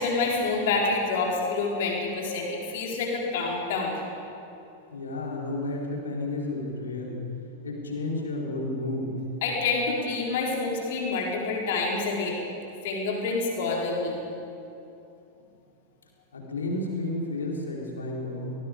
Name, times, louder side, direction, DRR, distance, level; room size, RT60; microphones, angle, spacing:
voice 1, 0.0-4.0 9.4-12.4 12.8-14.2, left 3 dB, 55° left, -2 dB, 4.4 m, -27 dB
voice 2, 4.9-7.2 7.6-9.1 16.3-18.6, left 2 dB, 70° left, -1 dB, 4.3 m, -31 dB
25.5 x 19.5 x 5.3 m, 2.7 s
figure-of-eight pair, 90°, 0 cm